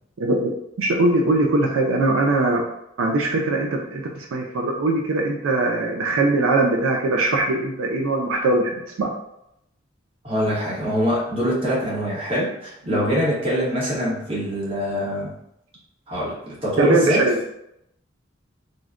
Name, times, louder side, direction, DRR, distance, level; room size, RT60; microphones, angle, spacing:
voice 1, 0.2-0.5 0.8-2.6 3.0-9.1 12.9-13.0 16.8-17.5, right 2 dB, 85° right, 1 dB, 0.4 m, -21 dB
voice 2, 10.2-15.3 16.1-17.2, equal, 30° right, -7 dB, 1.1 m, -24 dB
3.8 x 2.1 x 2.4 m, 0.80 s
head